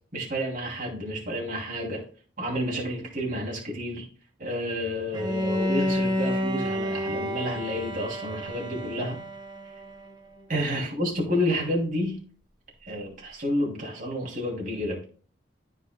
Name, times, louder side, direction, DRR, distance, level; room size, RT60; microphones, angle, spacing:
voice 1, 0.1-2.0 2.4-4.1 4.4-9.2 10.5-12.2 12.8-15.1, equal, 45° right, 2.8 m, -30 dB
Bowed string instrument, 5.1-10.1, equal, 20° right, 1.0 m, -30 dB
13.5 x 5.1 x 2.2 m
head